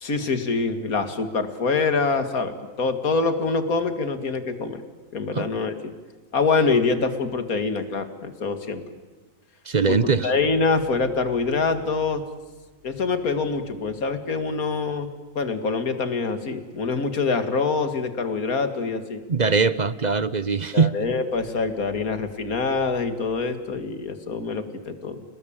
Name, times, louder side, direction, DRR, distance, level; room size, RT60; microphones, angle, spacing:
voice 1, 0.0-4.8 5.1-5.7 6.3-8.8 9.9-12.2 12.8-15.1 15.4-19.2 20.7-25.2, left 4 dB, 65° left, 9 dB, 2.5 m, -25 dB
voice 2, 9.6-10.3 19.3-20.9, right 5 dB, 35° right, 16 dB, 0.8 m, -21 dB
29.5 x 19.5 x 8.8 m, 1.3 s
omnidirectional pair, 1.6 m